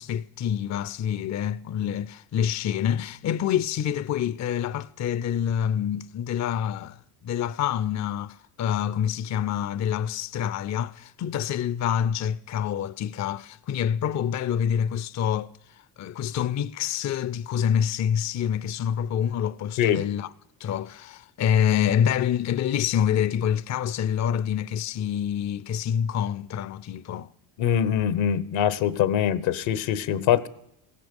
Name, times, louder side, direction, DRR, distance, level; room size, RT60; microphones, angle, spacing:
voice 1, 0.0-7.0 7.2-20.3 20.6-27.3, left 9 dB, 40° left, 0.5 m, -27 dB
voice 2, 27.6-30.5, left 9 dB, 75° left, 1.0 m, -23 dB
16.0 x 15.0 x 5.2 m
cardioid pair, 80°, 46 cm